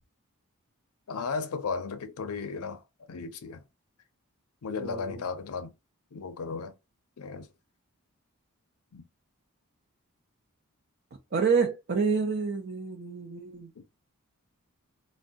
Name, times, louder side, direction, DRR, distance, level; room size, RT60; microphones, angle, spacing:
voice 1, 1.1-2.8 3.1-3.6 4.6-5.7 6.1-6.7 7.2-7.5 8.9-9.0 13.8-13.9, left 4 dB, 85° left, 0.5 m, -35 dB
voice 2, 4.8-5.2 11.3-13.7, right 5 dB, 50° right, 0.5 m, -28 dB
2.6 x 2.1 x 3.6 m
head